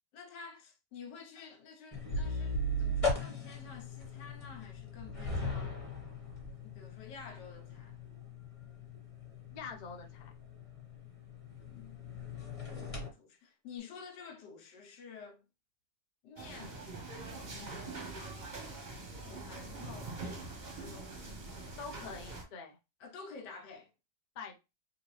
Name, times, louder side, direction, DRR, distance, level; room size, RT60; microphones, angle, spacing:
voice 1, 0.1-5.8 6.6-8.0 11.7-12.0 12.3-15.5 16.2-16.8 17.5-18.0 19.1-21.3 23.0-23.9, left 5 dB, 90° left, 1.4 m, -51 dB
sound 1, 1.9-13.1, left 1 dB, 20° left, 1.4 m, -39 dB
voice 2, 9.5-10.3 21.8-22.8 24.4-24.6, left 5 dB, 65° left, 0.4 m, -45 dB
sound 2, 16.4-22.4, right 3 dB, 35° right, 0.8 m, -44 dB
3.7 x 2.6 x 3.1 m
omnidirectional pair, 1.8 m